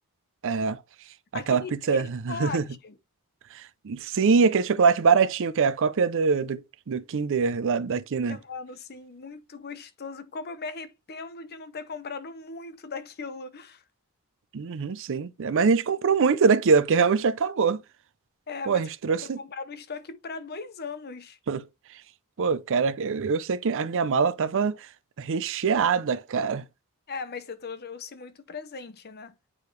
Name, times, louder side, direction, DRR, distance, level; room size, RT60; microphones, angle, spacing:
voice 1, 0.4-0.8 1.5-2.6 3.5-8.4 14.5-17.8 18.7-19.4 21.5-21.6 22.4-24.9 25.2-26.6, right 5 dB, 60° right, 0.5 m, -24 dB
voice 2, 1.3-1.7 2.0-3.0 8.3-13.8 18.5-18.9 19.2-21.4 27.1-29.3, left 4 dB, 45° left, 0.8 m, -38 dB
8.6 x 4.7 x 3.2 m
head